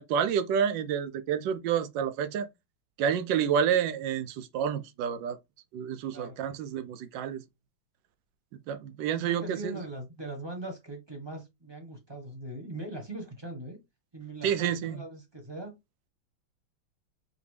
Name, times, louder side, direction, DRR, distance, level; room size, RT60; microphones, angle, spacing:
voice 1, 0.0-2.5 3.0-5.4 5.7-7.4 8.7-9.7 14.4-15.0, right 8 dB, 70° right, 1.2 m, -29 dB
voice 2, 9.2-13.8 14.1-15.8, right 2 dB, 15° right, 0.9 m, -40 dB
5.0 x 2.7 x 3.3 m
omnidirectional pair, 2.3 m